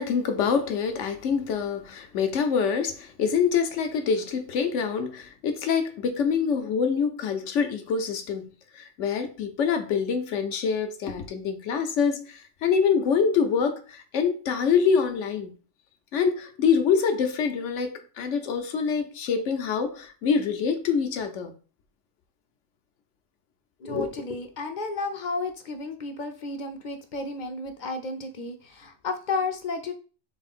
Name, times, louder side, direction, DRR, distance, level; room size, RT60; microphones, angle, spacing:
voice 1, 0.0-15.5 16.1-21.5, left 6 dB, 85° left, 1.1 m, -25 dB
voice 2, 23.8-29.9, left 3 dB, 55° left, 0.6 m, -32 dB
3.5 x 3.5 x 4.2 m
omnidirectional pair, 1.2 m